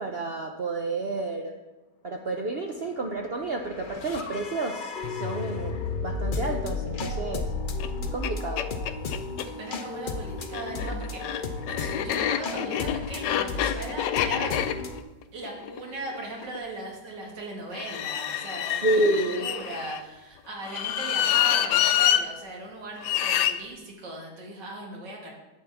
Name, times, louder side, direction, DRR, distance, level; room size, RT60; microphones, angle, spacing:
voice 1, 0.0-1.6 2.0-7.5 8.1-8.6 18.8-19.5, right 2 dB, 60° right, 2 dB, 0.6 m, -30 dB
sound 1, 3.2-15.0, left 3 dB, 50° left, 0.6 m, -33 dB
sound 2, 7.8-7.9 8.2-8.3 8.6-9.5 10.4-16.6 17.7-20.0 20.6-22.2 23.0-23.5, left 11 dB, 80° left, 1.2 m, -27 dB
voice 2, 9.6-11.5 11.8-14.5 15.3-25.3, right 2 dB, 80° right, -1 dB, 2.6 m, -38 dB
11.0 x 8.4 x 3.5 m, 1.1 s
omnidirectional pair, 1.9 m